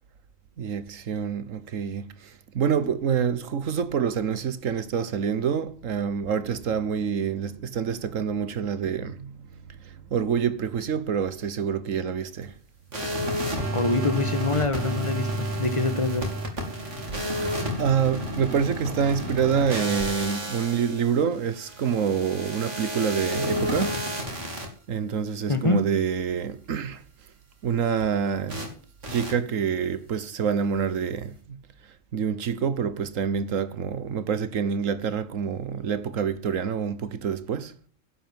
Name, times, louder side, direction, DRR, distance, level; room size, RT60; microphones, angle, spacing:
voice 1, 0.6-9.4 9.7-12.5 17.6-24.0 24.9-27.0 27.6-28.6 29.1-31.6 32.1-37.7, right 7 dB, 85° right, 1.5 m, -27 dB
sound 1, 12.9-24.7 28.5-28.7 29.0-29.3, equal, 70° right, 3.7 m, -31 dB
voice 2, 13.7-16.2 25.5-25.8, left 3 dB, 25° left, 1.6 m, -25 dB
11.5 x 8.8 x 7.5 m
omnidirectional pair, 1.3 m